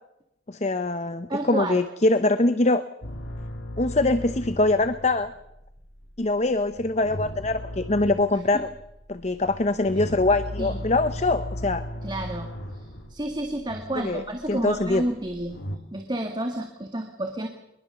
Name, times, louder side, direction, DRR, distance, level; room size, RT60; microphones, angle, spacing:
voice 1, 0.5-2.8 3.8-5.3 6.2-8.7 9.1-11.8 14.0-14.2 14.5-15.0, left 2 dB, 35° left, 11 dB, 0.8 m, -23 dB
voice 2, 1.3-1.9 8.5-8.6 10.6-10.8 12.0-15.6 15.9-17.5, right 1 dB, 25° right, 4 dB, 1.9 m, -30 dB
sound 1, 3.0-15.8, equal, 80° left, 2.7 m, -37 dB
22.5 x 21.5 x 7.0 m, 0.87 s
head